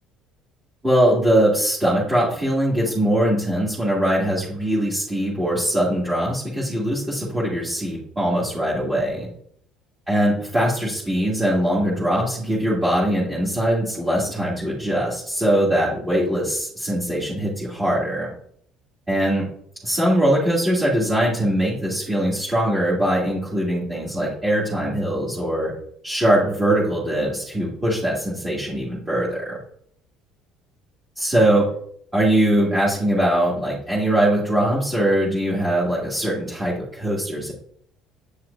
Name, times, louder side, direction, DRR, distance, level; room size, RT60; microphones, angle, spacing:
voice 1, 0.8-9.3 10.1-18.3 19.1-19.5 19.8-25.7 26.0-29.6 31.1-31.7 32.1-37.5, right 1 dB, 15° right, -9 dB, 2.8 m, -21 dB
8.8 x 6.2 x 2.8 m, 0.66 s
cardioid pair, 110°, 0 cm